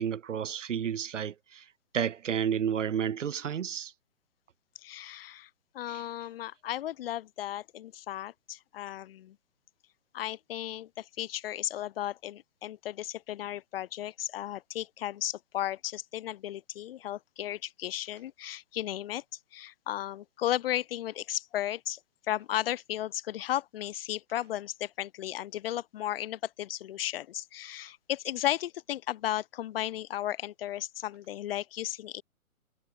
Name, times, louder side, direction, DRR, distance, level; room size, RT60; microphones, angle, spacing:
voice 1, 0.0-1.6 1.9-3.9, right 8 dB, 55° right, 1.3 m, -31 dB
voice 2, 4.8-5.5 5.7-9.3 10.1-19.2 19.5-22.0 22.3-32.2, left 13 dB, 40° left, 6.2 m, -35 dB
figure-of-eight pair, 130°, 43 cm